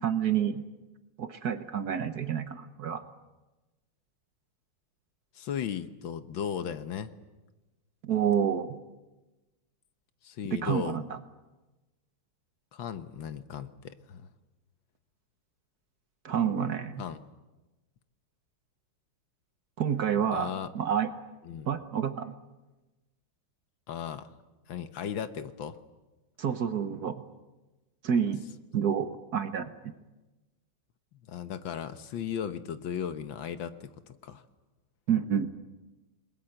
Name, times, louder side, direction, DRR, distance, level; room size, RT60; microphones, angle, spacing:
voice 1, 0.0-0.6 1.2-3.0 8.0-8.8 10.5-11.2 16.2-17.0 19.8-21.1 21.6-22.3 26.4-27.2 28.0-28.4 28.7-29.9 35.1-35.5, right 8 dB, 55° right, 10 dB, 1.3 m, -29 dB
voice 2, 5.3-7.1 10.2-11.0 12.7-14.3 17.0-17.2 20.3-20.7 21.4-21.7 23.9-24.3 24.7-25.8 31.3-34.4, left 8 dB, 70° left, 11 dB, 1.7 m, -36 dB
29.0 x 21.0 x 7.9 m, 1.1 s
omnidirectional pair, 2.3 m